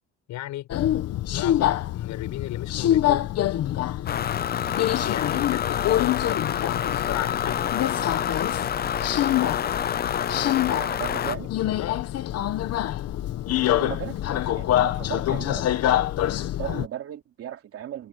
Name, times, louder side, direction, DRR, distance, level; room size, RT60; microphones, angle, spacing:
voice 1, 0.3-0.7 1.3-3.3 5.1-7.7 11.8-12.1, left 15 dB, 75° left, 7.6 m, -35 dB
Subway metro underground, 0.7-16.9, left 12 dB, 60° left, 1.2 m, -26 dB
sound 1, 4.1-11.4, left 9 dB, 35° left, 0.7 m, -28 dB
voice 2, 10.3-11.5 13.8-18.1, right 11 dB, 50° right, 3.1 m, -37 dB
cardioid pair, 155°, 29 cm